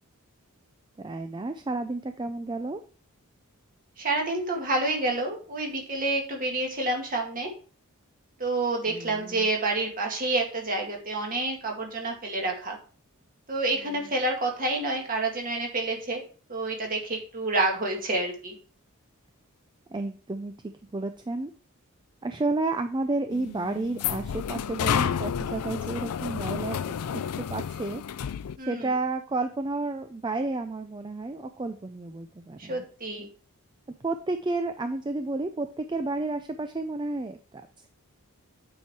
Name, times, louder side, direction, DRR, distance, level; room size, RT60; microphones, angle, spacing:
voice 1, 1.0-2.8 8.9-9.5 13.8-14.1 19.9-20.5 20.9-21.5 22.2-28.0 28.7-32.9 34.0-37.6, right 2 dB, 20° right, 8 dB, 0.4 m, -31 dB
voice 2, 4.0-7.5 8.4-12.8 13.5-16.2 16.5-18.5 28.6-28.9 32.7-33.3, right 2 dB, 40° right, 1 dB, 2.0 m, -28 dB
sound 1, 23.3-28.5, left 8 dB, 85° left, 0.4 m, -30 dB
8.6 x 4.5 x 4.6 m, 0.40 s
head